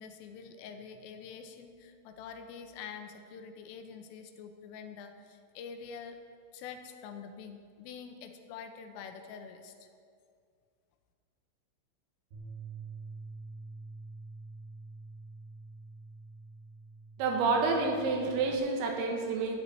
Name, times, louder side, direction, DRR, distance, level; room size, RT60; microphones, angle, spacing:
voice 1, 0.0-6.2 6.5-9.9, left 6 dB, 85° left, 6 dB, 3.5 m, -46 dB
Bass guitar, 12.3-18.6, right 3 dB, 55° right, 5.9 m, -47 dB
voice 2, 17.2-19.6, right 4 dB, 85° right, 2 dB, 4.3 m, -29 dB
12.5 x 7.3 x 9.9 m, 2.2 s
omnidirectional pair, 5.8 m